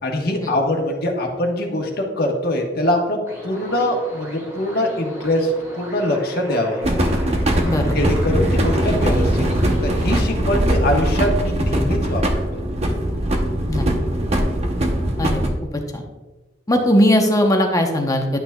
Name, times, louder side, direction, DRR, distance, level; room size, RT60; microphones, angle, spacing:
voice 1, 0.0-6.8 7.9-12.2, left 1 dB, 60° left, 1 dB, 1.2 m, -23 dB
sound 1, 3.3-10.2, equal, 15° right, 2.0 m, -37 dB
sound 2, 6.8-15.5, right 1 dB, 35° right, 0.8 m, -20 dB
voice 2, 7.6-8.0 13.7-13.9 15.2-15.4 15.7-16.0 16.7-18.4, equal, 20° left, 3 dB, 0.8 m, -19 dB
11.0 x 5.9 x 2.3 m, 1.2 s
head